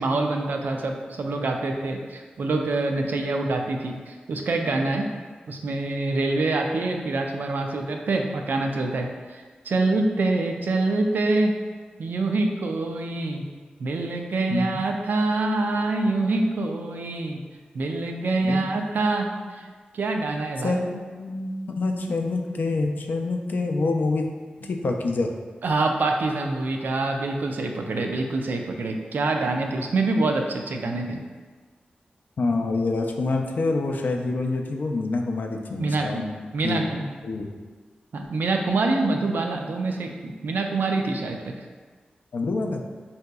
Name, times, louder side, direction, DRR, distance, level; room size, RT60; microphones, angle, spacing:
voice 1, 0.0-5.1 5.5-11.5 12.0-13.4 13.8-17.4 17.7-19.7 19.9-20.8 25.6-31.2 35.8-36.2 36.5-37.0 38.1-41.6, right 2 dB, 75° right, 3 dB, 0.3 m, -25 dB
voice 2, 14.5-14.8 18.4-18.6 20.6-24.3 24.6-25.3 27.9-28.0 32.4-36.3 36.6-36.8 37.2-37.5 42.3-42.8, left 3 dB, 70° left, 2 dB, 0.3 m, -26 dB
3.8 x 2.7 x 2.2 m, 1.5 s
cardioid pair, 65°, 3 cm